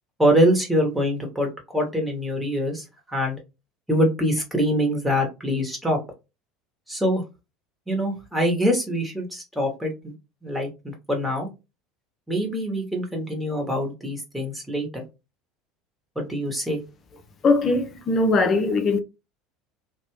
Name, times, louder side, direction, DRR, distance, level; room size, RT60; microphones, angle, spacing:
voice 1, 0.2-3.4 3.9-6.0 6.9-7.2 7.9-10.1 10.4-11.5 12.3-15.0 16.2-16.8, equal, ahead, 1.2 m, -24 dB
voice 2, 17.4-19.0, left 3 dB, 35° left, 0.6 m, -20 dB
2.9 x 2.2 x 3.1 m
figure-of-eight pair, 70°, 0 cm